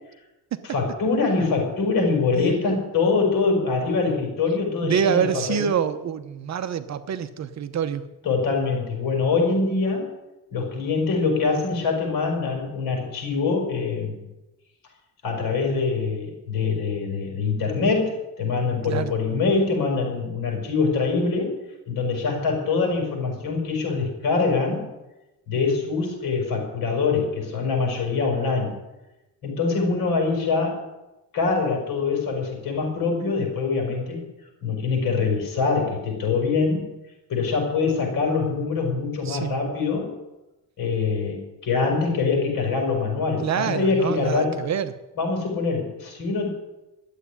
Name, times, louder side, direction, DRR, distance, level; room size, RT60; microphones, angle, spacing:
voice 1, 0.6-5.7 8.2-10.1 10.5-14.2 15.2-21.5 21.9-24.9 25.5-28.7 29.4-30.8 31.3-34.2 34.6-36.9 37.3-40.1 40.8-44.6 45.2-46.5, left 4 dB, 60° left, 1 dB, 5.5 m, -24 dB
voice 2, 4.8-8.0 18.8-19.1 39.2-39.5 43.4-44.9, right 8 dB, 45° right, 11 dB, 0.8 m, -26 dB
12.0 x 8.2 x 9.9 m, 1.0 s
cardioid pair, 150°, 38 cm